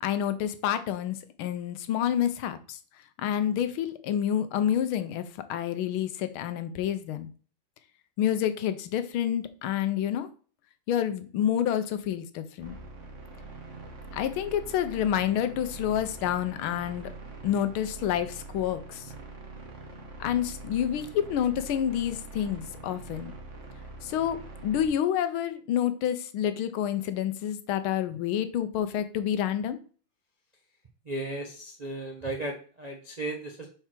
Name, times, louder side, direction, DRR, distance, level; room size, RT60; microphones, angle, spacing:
voice 1, 0.0-2.8 3.2-5.2 5.5-7.3 8.2-10.3 10.9-12.8 14.1-17.1 17.4-19.0 20.2-23.3 24.0-24.4 24.6-29.8, left 10 dB, 80° left, 11 dB, 1.5 m, -28 dB
sound 1, 12.6-24.9, right 3 dB, 40° right, 1.4 m, -44 dB
voice 2, 31.1-33.7, right 2 dB, 60° right, -1 dB, 0.4 m, -35 dB
4.7 x 4.5 x 5.8 m, 0.40 s
omnidirectional pair, 2.3 m